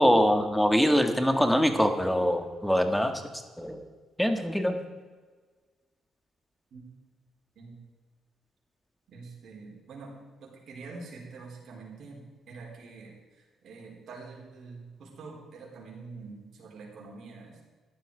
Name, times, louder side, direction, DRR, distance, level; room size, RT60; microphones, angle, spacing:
voice 1, 0.0-3.2 3.6-3.8 4.2-4.8, equal, 5° left, 7 dB, 1.7 m, -23 dB
voice 2, 9.1-10.1 10.4-17.6, right 4 dB, 65° right, -1 dB, 4.3 m, -46 dB
13.5 x 11.0 x 5.0 m, 1.4 s
cardioid pair, 90°, 0 cm